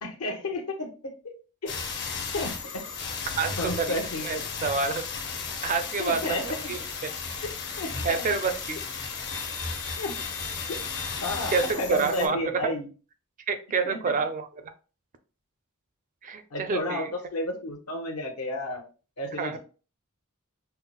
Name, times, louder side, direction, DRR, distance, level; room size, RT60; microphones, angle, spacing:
voice 1, 0.0-1.3 1.6-1.8 2.3-2.8 3.6-4.4 6.0-6.7 7.4-8.0 10.0-10.1 10.7-10.8 11.2-12.9 13.8-14.0 16.5-18.9 19.2-19.6, left 1 dB, 80° left, 2 dB, 0.9 m, -32 dB
sound 1, 1.7-12.3, left 5 dB, 55° left, 0.7 m, -34 dB
voice 2, 3.4-5.0 5.6-6.4 6.7-6.8 8.0-8.8 11.5-12.7 13.5-14.5 16.2-17.1 19.4-19.6, right 5 dB, 35° right, 9 dB, 0.4 m, -28 dB
5.5 x 2.0 x 2.3 m, 0.35 s
head